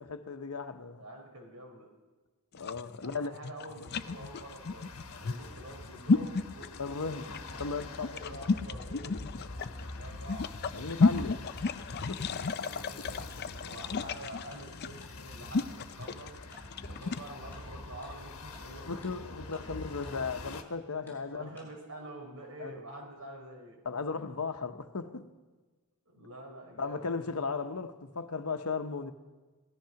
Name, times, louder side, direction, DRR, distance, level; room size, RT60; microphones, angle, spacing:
voice 1, 0.0-1.0 2.5-3.3 6.7-7.3 7.6-8.3 10.7-11.6 12.1-12.2 18.8-21.5 22.6-22.8 23.8-25.3 26.8-29.1, left 4 dB, 85° left, 1.0 m, -36 dB
voice 2, 0.9-1.9 3.0-4.9 5.1-7.2 7.9-9.3 9.9-10.5 12.4-16.3 16.9-19.0 19.2-19.7 21.0-23.8 26.1-27.1, right 1 dB, 80° right, 4.0 m, -47 dB
sound 1, 2.5-17.3, left 4 dB, 50° left, 0.5 m, -32 dB
sound 2, 3.9-20.6, left 2 dB, 70° left, 1.3 m, -45 dB
Tick-tock, 14.0-14.1 14.5-14.6 15.0-15.1 15.5-15.6 16.0-16.1 16.5-16.6 17.0-17.1 17.5-17.6 18.0-18.1 18.5-18.6 19.0-19.1 19.5-19.6 20.0-20.1 20.5-20.6 21.1-21.2 21.6-21.7, left 1 dB, 10° left, 5.5 m, -54 dB
17.5 x 13.5 x 5.9 m
head